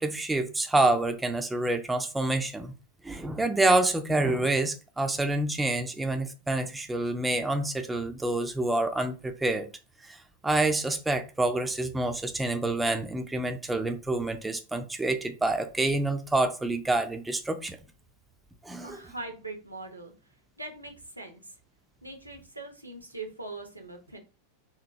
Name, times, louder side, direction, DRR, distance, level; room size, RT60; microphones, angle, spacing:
voice 1, 0.0-2.7 3.0-9.7 10.0-17.8 18.6-19.0, right 2 dB, 10° right, 0.3 m, -27 dB
voice 2, 18.8-20.1 20.6-21.5 22.0-24.2, right 2 dB, 85° right, 0.6 m, -41 dB
2.8 x 2.0 x 2.6 m
figure-of-eight pair, 90°, 0 cm